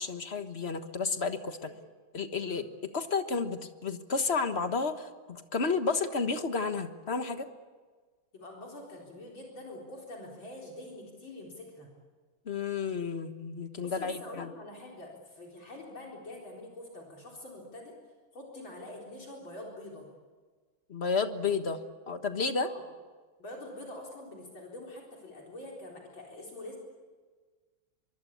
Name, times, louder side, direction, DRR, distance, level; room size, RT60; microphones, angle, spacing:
voice 1, 0.0-1.7 2.1-2.7 2.9-7.5 12.5-14.5 20.9-21.8 22.1-22.7, left 4 dB, 35° left, 8 dB, 1.4 m, -31 dB
voice 2, 8.3-11.9 13.8-17.9 18.3-20.1 22.6-22.8 23.4-26.8, left 1 dB, 65° left, -2 dB, 4.9 m, -45 dB
24.0 x 24.0 x 8.6 m, 1.4 s
omnidirectional pair, 2.3 m